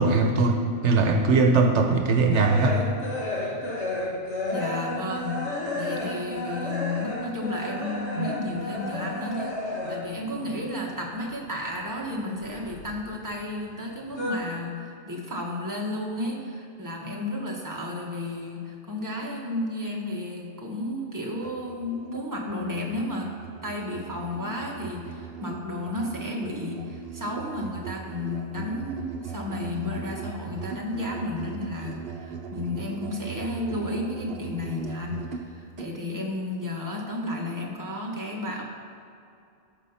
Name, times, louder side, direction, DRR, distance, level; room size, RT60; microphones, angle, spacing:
voice 1, 0.0-2.8 8.2-8.3, right 3 dB, 80° right, 4 dB, 1.1 m, -21 dB
sound 1, 2.3-10.2 10.5-11.7 12.0-13.4 13.7-14.3, left 1 dB, 70° left, 2.0 m, -32 dB
voice 2, 4.5-23.3 23.6-38.6, left 2 dB, 15° right, -2 dB, 1.5 m, -32 dB
Musical instrument, 21.3-36.0, right 7 dB, 60° right, 0.9 m, -39 dB
14.0 x 5.4 x 5.6 m, 2.6 s
omnidirectional pair, 1.2 m